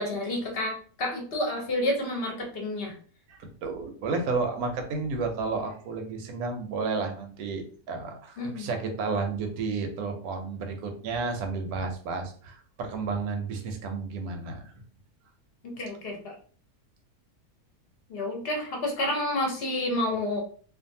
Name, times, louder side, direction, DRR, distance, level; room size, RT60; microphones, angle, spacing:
voice 1, 0.0-3.0 8.4-8.7 15.8-16.3 18.1-20.4, left 1 dB, 50° left, 0 dB, 0.8 m, -29 dB
voice 2, 3.3-14.6, right 4 dB, 80° right, 4 dB, 1.1 m, -32 dB
2.5 x 2.4 x 2.6 m, 0.44 s
omnidirectional pair, 1.6 m